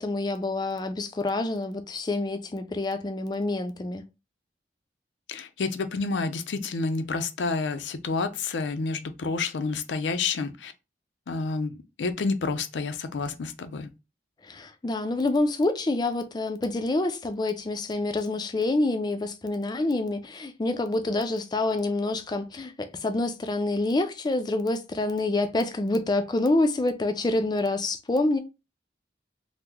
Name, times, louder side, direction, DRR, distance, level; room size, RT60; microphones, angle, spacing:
voice 1, 0.0-4.1 14.4-28.4, left 2 dB, 25° left, 0.3 m, -27 dB
voice 2, 5.3-10.7 11.3-13.9, left 4 dB, 90° left, 0.5 m, -29 dB
2.9 x 2.0 x 3.5 m
head